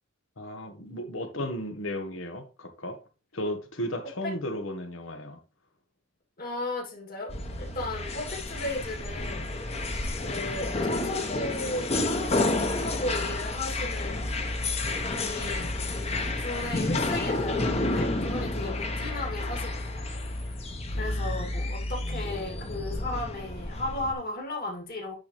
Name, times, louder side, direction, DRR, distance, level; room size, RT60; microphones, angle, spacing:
voice 1, 0.4-3.0 3.3-5.4 20.9-21.2, left 1 dB, 80° left, 1.3 m, -35 dB
voice 2, 6.4-9.5 10.2-14.5 14.9-15.7 16.4-20.5 20.9-25.2, left 2 dB, 50° left, 2.6 m, -35 dB
sound 1, 7.3-24.1, left 2 dB, 35° left, 1.1 m, -30 dB
9.4 x 4.2 x 3.3 m
head